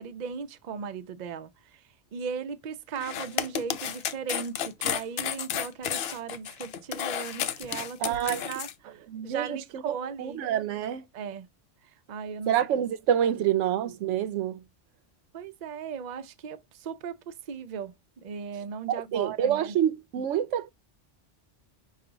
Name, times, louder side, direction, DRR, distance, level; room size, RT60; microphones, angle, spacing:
voice 1, 0.0-1.8 2.1-10.4 11.1-11.5 11.8-12.5 13.2-13.5 15.3-19.8, right 6 dB, 50° right, 0.6 m, -37 dB
sound 1, 3.0-8.7, left 9 dB, 65° left, 0.7 m, -32 dB
voice 2, 8.0-8.5 9.1-11.1 12.5-14.6 18.9-20.7, right 10 dB, 85° right, 0.9 m, -27 dB
5.7 x 2.4 x 3.8 m
omnidirectional pair, 1.2 m